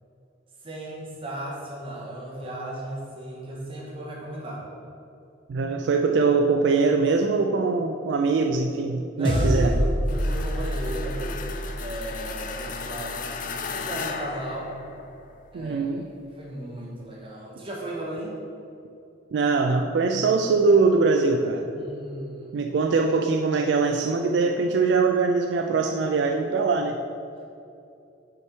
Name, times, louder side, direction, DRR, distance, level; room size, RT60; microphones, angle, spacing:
voice 1, 0.6-4.7 9.2-14.7 15.5-15.9 16.2-18.4 21.7-22.6, right 1 dB, 30° right, -5 dB, 1.4 m, -35 dB
voice 2, 5.5-9.7 15.5-16.0 19.3-21.7 22.5-27.0, right 4 dB, 65° right, 4 dB, 0.3 m, -22 dB
sound 1, 9.2-13.8, equal, 25° left, 0.8 m, -28 dB
sound 2, 10.1-15.3, left 5 dB, 45° left, 0.4 m, -36 dB
6.1 x 4.5 x 4.5 m, 2.6 s
head